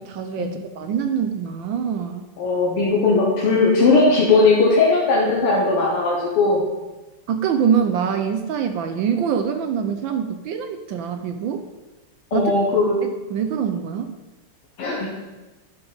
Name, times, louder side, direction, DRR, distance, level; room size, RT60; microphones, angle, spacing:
voice 1, 0.0-2.3 7.3-11.6 12.3-12.5 13.0-14.1, right 7 dB, 75° right, 6 dB, 1.2 m, -24 dB
voice 2, 2.4-6.6 12.3-13.0 14.8-15.1, left 3 dB, 80° left, -4 dB, 2.1 m, -18 dB
10.5 x 5.3 x 3.9 m, 1.1 s
omnidirectional pair, 2.4 m